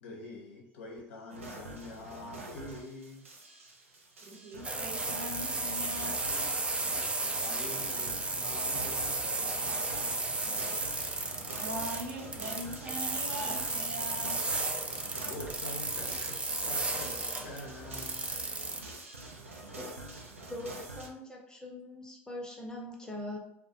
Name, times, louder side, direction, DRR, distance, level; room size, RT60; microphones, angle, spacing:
voice 1, 0.0-3.3 7.2-10.8 15.1-18.3, left 2 dB, 75° left, -1 dB, 0.6 m, -46 dB
sound 1, 1.3-21.1, right 2 dB, 85° right, 0.3 m, -46 dB
voice 2, 4.2-6.5 11.6-14.4, equal, 60° right, -2 dB, 0.8 m, -41 dB
sound 2, 4.6-18.8, right 3 dB, 15° right, 0.4 m, -34 dB
voice 3, 20.5-23.4, left 1 dB, 10° left, -1 dB, 0.7 m, -42 dB
2.3 x 2.1 x 2.6 m, 0.78 s
figure-of-eight pair, 65°, 7 cm